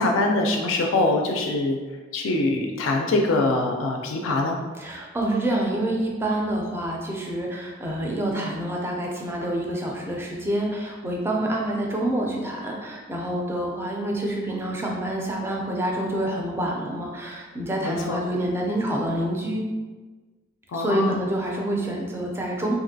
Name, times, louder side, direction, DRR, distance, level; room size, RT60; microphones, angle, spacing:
voice 1, 0.0-1.8 2.1-4.6 17.8-18.2 20.7-21.3, left 2 dB, 80° left, 2 dB, 0.3 m, -23 dB
voice 2, 4.8-19.6 20.7-22.7, right 1 dB, 10° right, -1 dB, 0.4 m, -27 dB
2.9 x 2.5 x 2.6 m, 1.3 s
head